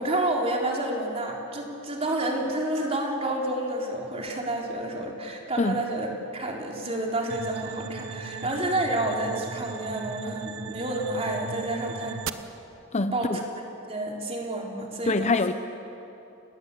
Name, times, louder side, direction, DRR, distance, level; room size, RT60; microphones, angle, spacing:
voice 1, 0.0-12.2 13.1-13.4 13.9-15.3, right 1 dB, 30° right, 0 dB, 3.9 m, -29 dB
sound 1, 7.3-12.3, right 4 dB, 65° right, 1.1 m, -37 dB
voice 2, 12.9-13.4 15.1-15.5, left 3 dB, 35° left, 10 dB, 0.7 m, -24 dB
29.5 x 20.5 x 8.4 m, 2.9 s
head